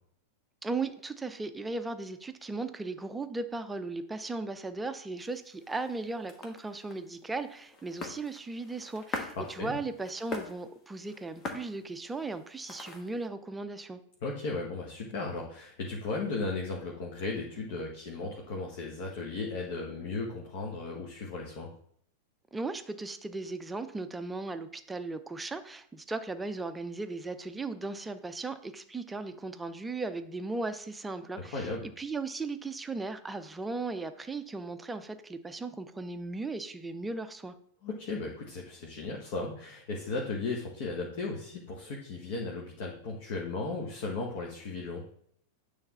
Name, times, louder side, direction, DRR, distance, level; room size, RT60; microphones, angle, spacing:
voice 1, 0.6-14.0 22.5-37.5, right 3 dB, 10° right, 10 dB, 0.5 m, -37 dB
sound 1, 5.2-13.3, left 3 dB, 30° left, 1.2 m, -44 dB
voice 2, 9.4-9.8 14.2-21.7 31.5-31.9 37.8-45.0, left 3 dB, 50° left, -1 dB, 1.3 m, -36 dB
8.9 x 3.3 x 4.2 m, 0.64 s
figure-of-eight pair, 90°, 0 cm